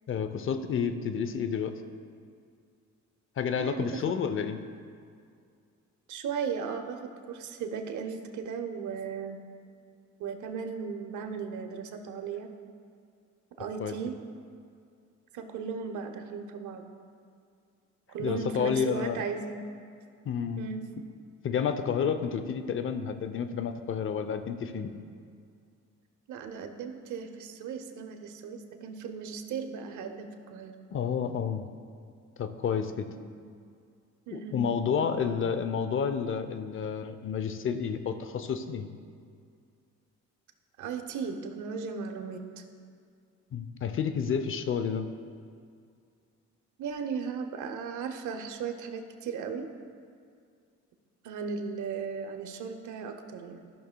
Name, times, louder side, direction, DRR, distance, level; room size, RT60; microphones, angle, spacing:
voice 1, 0.1-1.7 3.4-4.6 13.8-13.9 18.2-19.2 20.3-20.7 21.4-24.9 30.9-31.6 32.4-33.1 34.3-38.9 43.5-45.1, left 7 dB, 45° left, 9 dB, 0.6 m, -30 dB
voice 2, 3.5-4.0 6.1-9.4 10.2-12.5 13.6-14.2 15.3-16.8 18.1-19.6 20.6-20.9 26.3-30.7 33.1-33.3 34.3-34.6 40.8-42.6 46.8-49.7 51.2-53.7, right 6 dB, 75° right, 5 dB, 0.8 m, -36 dB
14.0 x 5.8 x 2.2 m, 2.3 s
cardioid pair, 90°, 30 cm